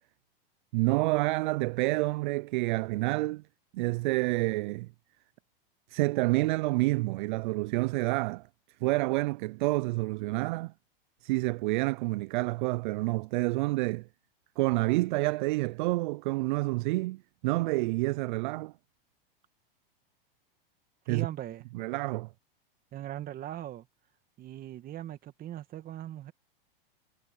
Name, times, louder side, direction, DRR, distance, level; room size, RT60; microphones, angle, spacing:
voice 1, 0.7-3.4 3.7-4.9 5.9-8.5 8.8-10.7 11.2-14.1 14.6-18.7 21.1-21.3 21.7-22.3, right 22 dB, 55° right, 0.4 m, -28 dB
voice 2, 21.0-21.7 22.9-23.9 24.4-26.3, right 12 dB, 30° right, 2.2 m, -39 dB
hypercardioid pair, 130°, 29 cm